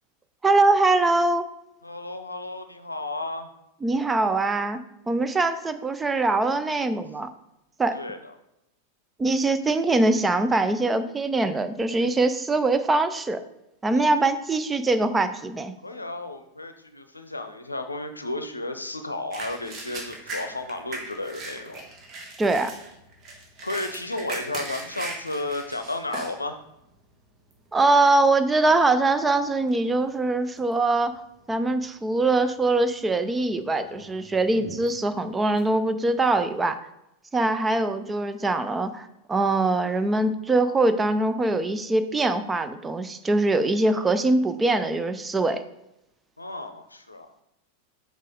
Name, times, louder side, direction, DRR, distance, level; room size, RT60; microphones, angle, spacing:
voice 1, 0.4-1.5 3.8-4.8 5.1-7.3 7.8-8.0 9.2-13.4 13.8-15.7 22.4-22.7 27.7-31.1 31.5-36.8 37.3-45.6, right 2 dB, 15° right, 10 dB, 0.5 m, -23 dB
voice 2, 1.8-3.5 7.9-8.3 14.1-14.2 15.8-21.8 23.6-26.6 46.4-47.3, left 2 dB, 80° left, 8 dB, 0.6 m, -33 dB
sound 1, 19.3-26.4 26.9-27.0 27.5-27.9 28.6-28.8 29.1-30.2 30.6-31.1 31.5-31.6 32.4-33.0 33.4-36.5, right 2 dB, 35° right, 1.6 m, -39 dB
6.4 x 4.8 x 3.9 m, 0.87 s
figure-of-eight pair, 90°, 0 cm